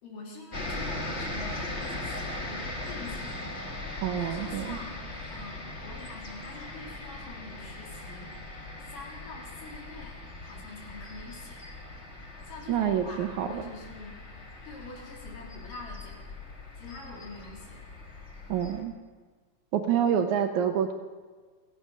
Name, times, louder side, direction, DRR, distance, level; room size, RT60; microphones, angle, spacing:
voice 1, 0.0-3.4 4.2-8.6 8.9-11.6 12.4-14.3 14.6-16.3 16.8-17.9, left 3 dB, 75° left, -2 dB, 4.6 m, -45 dB
sound 1, 0.5-18.8, left 2 dB, 30° left, 1.2 m, -39 dB
voice 2, 4.0-4.8 12.7-13.6 18.5-18.9 19.7-20.9, right 9 dB, 70° right, 6 dB, 2.0 m, -27 dB
16.0 x 15.5 x 5.4 m, 1.4 s
omnidirectional pair, 3.9 m